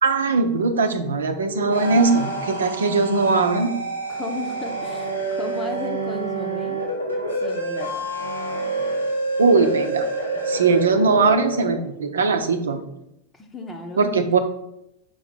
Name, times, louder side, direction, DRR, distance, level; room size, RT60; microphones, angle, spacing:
voice 1, 0.0-3.7 9.4-10.1 10.5-12.8 14.0-14.4, right 4 dB, 70° right, 7 dB, 0.8 m, -20 dB
sound 1, 1.4-11.8, right 2 dB, 85° left, 1.8 m, -27 dB
voice 2, 4.1-6.8 7.4-8.1 13.3-14.1, left 2 dB, 20° left, 2 dB, 0.9 m, -34 dB
6.3 x 4.8 x 4.4 m, 0.82 s
figure-of-eight pair, 90°, 0 cm